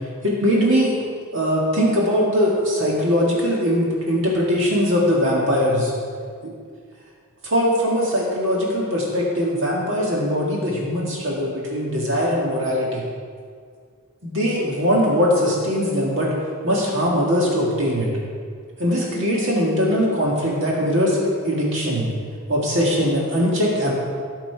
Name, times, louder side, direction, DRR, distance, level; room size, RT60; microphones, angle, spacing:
voice 1, 0.2-1.0 1.3-5.9 7.4-13.0 14.2-16.3 16.6-18.1 18.8-22.1 22.5-23.9, equal, 60° right, -4 dB, 2.0 m, -21 dB
17.5 x 6.0 x 4.7 m, 2.1 s
head